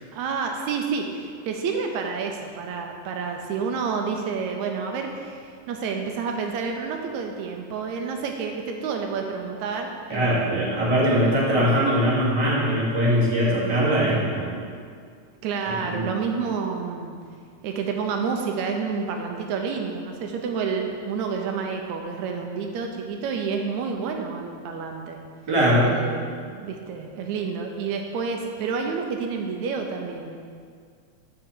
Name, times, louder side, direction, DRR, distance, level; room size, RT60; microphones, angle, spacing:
voice 1, 0.1-10.8 15.4-17.2 17.6-25.2 25.9-30.4, right 5 dB, 75° right, 3 dB, 1.9 m, -29 dB
voice 2, 10.1-14.5 15.8-16.1 25.5-25.9, equal, 35° right, -8 dB, 2.6 m, -21 dB
6.7 x 6.1 x 7.1 m, 2.1 s
omnidirectional pair, 3.4 m